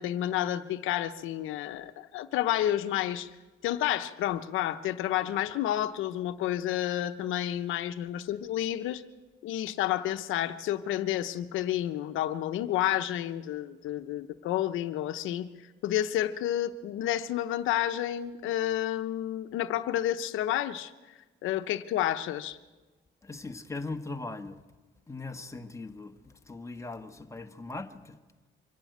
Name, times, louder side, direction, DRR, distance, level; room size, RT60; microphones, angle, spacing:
voice 1, 0.0-3.3 3.6-9.0 9.4-15.5 15.8-20.9 21.4-22.6, left 12 dB, 90° left, 0.8 m, -30 dB
voice 2, 23.2-24.6 25.1-28.2, left 3 dB, 15° left, 1.4 m, -40 dB
24.5 x 11.5 x 9.3 m
cardioid pair, 90°, 20 cm